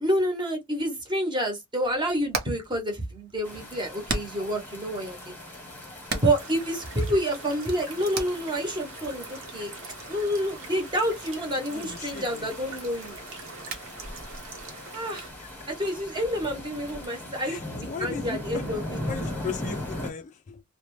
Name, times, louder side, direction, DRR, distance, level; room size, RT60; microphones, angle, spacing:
voice 1, 0.0-5.4 6.1-9.7 10.1-13.2 14.9-15.3 15.7-17.6 18.0-18.8, equal, 20° right, 0.9 m, -28 dB
Hammer, 1.8-17.1, right 3 dB, 50° right, 0.7 m, -41 dB
sound 1, 3.4-20.1, left 1 dB, 10° left, 1.0 m, -39 dB
sound 2, 6.4-15.3, right 4 dB, 65° right, 1.0 m, -44 dB
voice 2, 11.7-12.7 15.4-15.7 17.4-18.6 19.1-20.6, left 6 dB, 35° left, 0.3 m, -38 dB
2.6 x 2.1 x 3.0 m
head